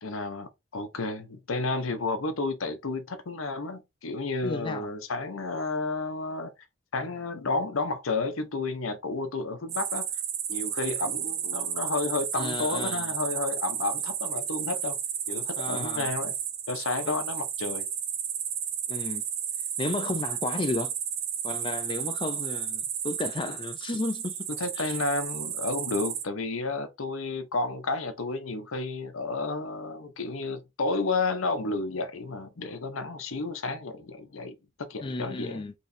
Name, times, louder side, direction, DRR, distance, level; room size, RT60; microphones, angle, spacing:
voice 1, 0.0-6.5 6.9-10.1 10.5-15.0 15.3-16.3 16.7-17.9 24.6-35.6, left 3 dB, 85° left, 0.8 m, -31 dB
voice 2, 4.4-4.9 12.3-13.1 15.6-16.1 17.1-17.2 18.9-19.2 19.8-20.9 21.4-24.5 24.8-25.0 35.0-35.7, left 2 dB, 25° left, 0.3 m, -33 dB
sound 1, 9.7-26.2, right 9 dB, 85° right, 0.9 m, -33 dB
4.5 x 3.1 x 2.6 m
head